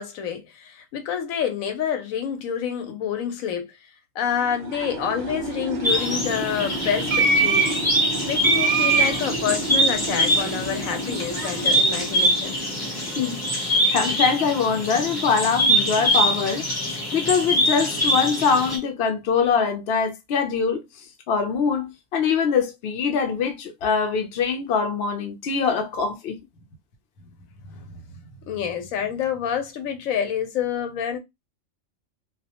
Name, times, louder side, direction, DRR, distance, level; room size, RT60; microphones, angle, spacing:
voice 1, 0.0-3.7 4.1-7.7 8.3-12.6 27.2-27.3 27.6-28.0 28.4-31.2, left 8 dB, 80° left, 1.1 m, -28 dB
sound 1, 4.4-12.9, right 3 dB, 50° right, 0.6 m, -26 dB
sound 2, 5.8-18.8, equal, 20° left, 0.7 m, -24 dB
voice 2, 13.2-20.8 21.3-26.4, left 5 dB, 60° left, 0.7 m, -23 dB
2.3 x 2.1 x 2.8 m
omnidirectional pair, 1.4 m